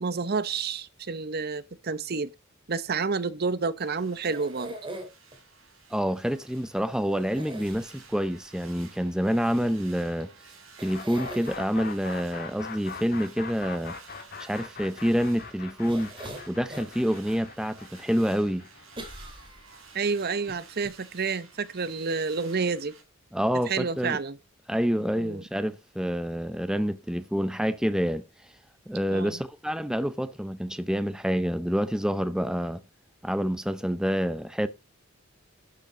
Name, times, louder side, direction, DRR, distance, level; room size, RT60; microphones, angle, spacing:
voice 1, 0.0-2.3 2.7-4.7 19.9-22.9 23.7-24.4 25.2-25.4 29.1-29.4, right 4 dB, 50° right, 0.8 m, -29 dB
sound 1, 3.8-23.0, right 5 dB, 75° right, 4.8 m, -53 dB
sound 2, 4.2-5.4 7.3-8.3 10.2-10.3 10.8-11.6 15.9-17.0 17.5-17.6 19.0-19.9 20.5-20.6 20.8-20.9, right 1 dB, 25° right, 3.0 m, -41 dB
voice 2, 5.9-10.3 10.8-14.0 14.4-16.1 16.5-18.6 23.3-24.2 24.7-28.2 28.9-32.8 33.2-34.7, equal, 5° right, 0.6 m, -27 dB
Take Off mono, 10.9-20.7, left 5 dB, 50° left, 2.1 m, -42 dB
12.0 x 6.8 x 5.0 m
head